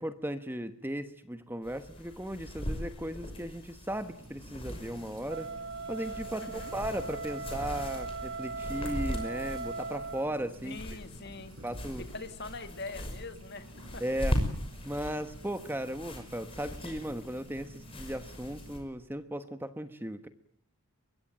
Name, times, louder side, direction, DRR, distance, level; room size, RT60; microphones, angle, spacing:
voice 1, 0.0-5.5 5.9-10.8 11.6-12.0 14.0-14.4 14.8-20.3, right 1 dB, 10° right, 10 dB, 1.3 m, -36 dB
sound 1, 1.6-18.8, equal, 25° left, 5.9 m, -40 dB
sound 2, 3.9-18.7, right 1 dB, 85° right, 5.8 m, -53 dB
Wind instrument woodwind instrument, 5.3-10.3, right 3 dB, 50° right, 2.1 m, -39 dB
voice 2, 6.4-6.7 10.6-11.6 12.0-14.0, left 3 dB, 50° left, 9 dB, 2.1 m, -43 dB
23.5 x 23.0 x 9.2 m, 0.65 s
head